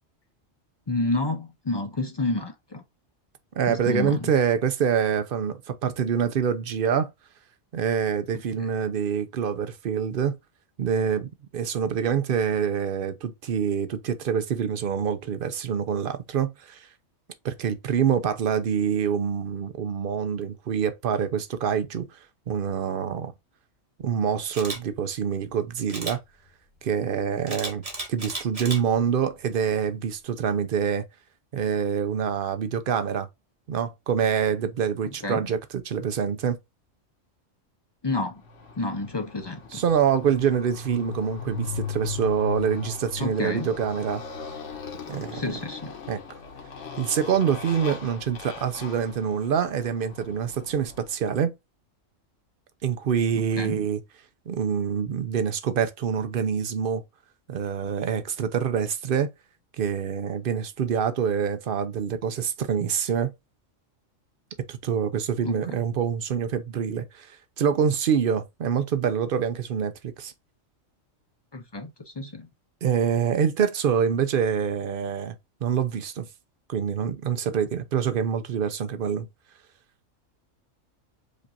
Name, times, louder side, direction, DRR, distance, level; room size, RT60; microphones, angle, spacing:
voice 1, 0.9-2.8 3.7-4.3 35.2-35.4 38.0-38.4 38.8-39.8 43.2-43.7 45.3-45.9 53.3-53.8 65.4-65.8 71.5-71.9 72.2-72.5, left 2 dB, 45° left, 0.3 m, -29 dB
voice 2, 3.6-7.1 7.7-10.4 10.8-16.9 17.4-22.1 22.5-23.3 24.0-26.2 26.8-27.8 28.1-31.0 31.5-33.3 33.7-36.6 39.7-44.2 45.1-45.6 46.1-46.2 47.0-51.5 52.8-54.0 54.5-57.0 57.5-59.3 59.8-63.3 64.7-67.3 67.6-70.3 72.8-75.4 75.6-76.3 76.7-79.3, right 7 dB, 55° right, 0.7 m, -26 dB
Camera, 24.5-24.8 25.9-26.2 27.5-28.8 29.3-29.5, right 2 dB, 25° right, 1.3 m, -34 dB
Motorcycle, 38.4-51.1, left 5 dB, 65° left, 1.3 m, -38 dB
5.2 x 2.5 x 4.1 m
omnidirectional pair, 1.4 m